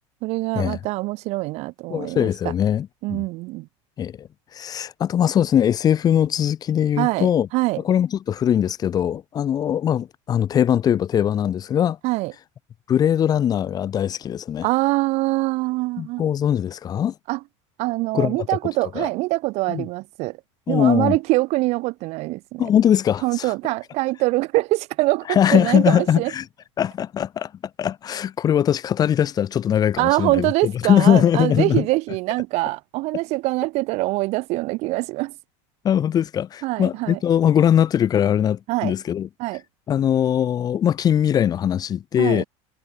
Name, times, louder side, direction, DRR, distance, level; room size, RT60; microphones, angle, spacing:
voice 1, 0.2-2.3 3.0-3.7 7.0-7.8 12.0-12.3 14.6-16.2 17.3-17.4 17.8-20.4 20.7-22.7 23.2-26.3 30.0-35.3 36.6-37.2 38.7-38.9 39.4-39.6 42.2-42.5, right 21 dB, 45° right, 5.6 m, -24 dB
voice 2, 1.9-3.2 4.0-7.5 7.8-12.0 12.9-14.7 16.0-17.1 18.1-18.4 19.0-19.1 19.7-19.9 20.7-21.2 22.6-23.5 25.3-26.4 26.8-27.5 27.8-31.8 35.8-39.3 39.9-42.4, left 9 dB, 25° left, 3.6 m, -21 dB
supercardioid pair, 160°, 16 cm